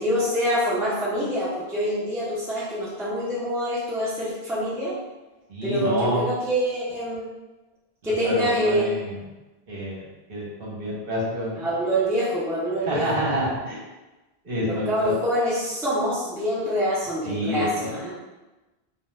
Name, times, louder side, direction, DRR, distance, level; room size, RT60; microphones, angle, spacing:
voice 1, 0.0-5.0 5.6-7.3 8.0-8.9 11.6-13.2 14.6-18.1, equal, 5° right, -8 dB, 0.4 m, -25 dB
voice 2, 5.5-6.2 8.0-9.2 9.7-11.6 12.8-13.8 14.4-15.1 17.2-18.1, equal, 60° right, -6 dB, 0.9 m, -28 dB
2.3 x 2.2 x 3.0 m, 1.1 s
omnidirectional pair, 1.1 m